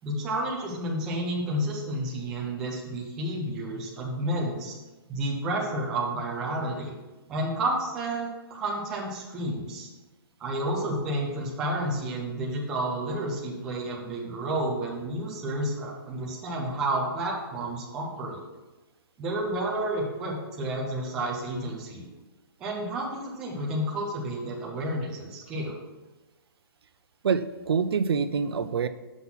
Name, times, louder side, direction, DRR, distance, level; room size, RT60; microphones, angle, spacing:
voice 1, 0.0-4.7 5.1-7.0 7.3-9.9 10.4-18.4 19.2-22.0 22.6-25.8, right 1 dB, 5° right, -3 dB, 0.3 m, -30 dB
voice 2, 27.2-28.9, right 6 dB, 85° right, 12 dB, 0.5 m, -26 dB
5.9 x 4.0 x 5.4 m, 1.1 s
hypercardioid pair, 180°, 13 cm